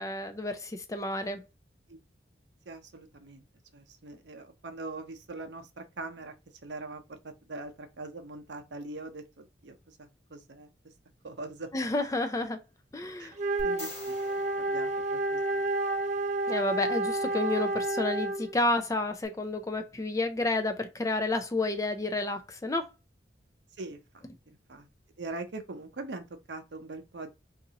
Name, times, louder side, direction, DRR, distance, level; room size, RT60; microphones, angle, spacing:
voice 1, 0.0-1.4 11.7-12.6 12.9-13.4 16.5-22.9, left 2 dB, 15° left, 0.4 m, -30 dB
voice 2, 2.7-3.5 3.7-6.3 6.6-10.7 11.2-11.7 13.2-13.3 13.6-15.6 23.8-24.9 25.2-27.3, right 2 dB, 70° right, 0.7 m, -42 dB
Wind instrument woodwind instrument, 13.3-18.6, right 2 dB, 40° right, 0.5 m, -30 dB
sound 1, 13.6-15.8 19.2-19.3, left 1 dB, 35° left, 1.3 m, -45 dB
2.8 x 2.6 x 3.8 m
head